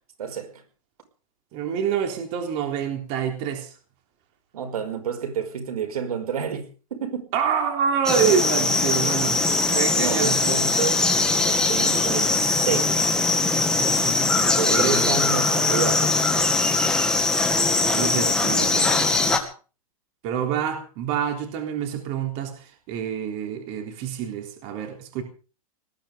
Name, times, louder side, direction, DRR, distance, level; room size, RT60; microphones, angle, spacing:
voice 1, 0.2-0.5 4.5-7.3 9.3-13.1 14.6-16.5, right 7 dB, 90° right, 5.2 m, -30 dB
voice 2, 1.5-3.7 7.3-9.5 9.7-10.4 13.8-15.1 17.9-19.4 20.2-25.2, right 7 dB, 35° right, 3.6 m, -27 dB
sound 1, 8.1-19.4, left 3 dB, 5° left, 2.0 m, -21 dB
19.5 x 13.5 x 5.1 m
supercardioid pair, 160°, 18 cm